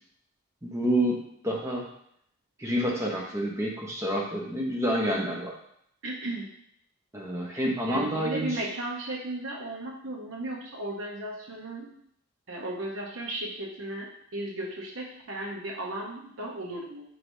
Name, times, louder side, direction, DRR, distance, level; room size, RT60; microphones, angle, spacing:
voice 1, 0.6-1.2 1.4-1.9 2.6-5.5 7.1-8.5, right 1 dB, 15° right, -2 dB, 0.7 m, -28 dB
voice 2, 6.0-6.5 7.5-11.9 12.5-17.0, right 1 dB, 65° right, -1 dB, 0.8 m, -35 dB
4.6 x 3.2 x 2.6 m, 0.70 s
head